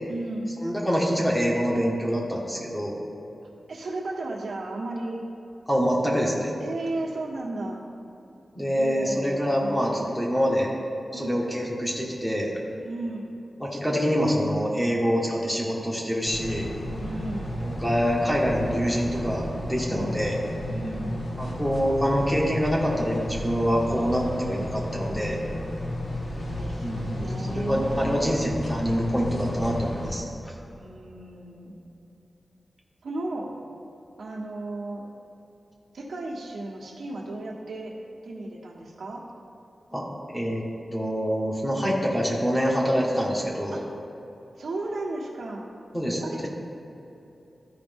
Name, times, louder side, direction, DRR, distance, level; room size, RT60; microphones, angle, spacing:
voice 1, 0.1-0.5 3.7-5.2 6.6-7.8 8.7-10.1 11.1-11.4 12.8-13.3 17.0-17.6 19.9-20.2 20.7-21.2 26.4-28.5 30.7-31.8 33.0-33.5 34.2-35.0 35.9-37.9 38.2-39.2 43.7-43.9 44.6-45.7 46.2-46.4, right 2 dB, 80° right, -3 dB, 1.3 m, -34 dB
voice 2, 0.6-2.9 5.7-6.5 8.5-10.7 11.1-12.5 13.6-16.7 17.6-20.4 21.4-25.4 26.8-30.3 39.9-40.0 40.3-40.6 40.9-43.7 45.9-46.5, equal, 10° left, -3 dB, 1.5 m, -25 dB
sound 1, 16.3-30.1, left 1 dB, 90° left, 1.4 m, -33 dB
13.5 x 5.0 x 3.6 m, 3.0 s
wide cardioid pair, 115°, 0 cm